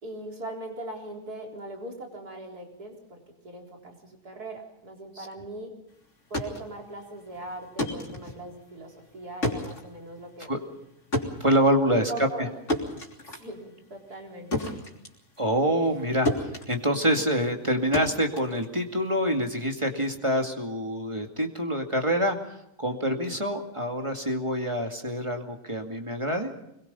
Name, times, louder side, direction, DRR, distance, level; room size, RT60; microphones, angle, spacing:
voice 1, 0.0-3.2 3.4-5.8 6.3-10.5 11.9-12.5 13.3-14.8, right 1 dB, 65° right, 1 dB, 4.6 m, -40 dB
sound 1, 6.1-19.2, left 1 dB, 45° left, 3.8 m, -33 dB
voice 2, 11.4-12.5 15.4-26.5, equal, 20° right, 3 dB, 2.3 m, -26 dB
25.5 x 22.0 x 5.6 m, 0.82 s
omnidirectional pair, 1.7 m